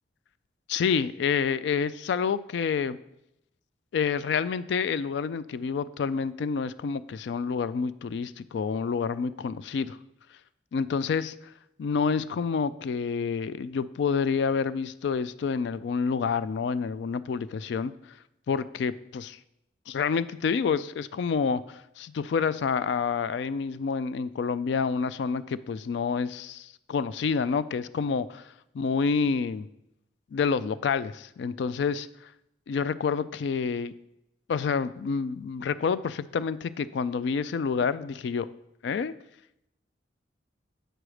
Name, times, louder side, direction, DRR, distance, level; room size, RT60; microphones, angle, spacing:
voice 1, 0.7-3.0 3.9-10.0 10.7-11.3 11.8-17.9 18.5-19.4 19.9-29.7 30.3-32.1 32.7-33.9 34.5-38.5 38.8-39.1, left 5 dB, 65° left, 16 dB, 0.3 m, -28 dB
7.8 x 6.2 x 4.9 m, 0.81 s
head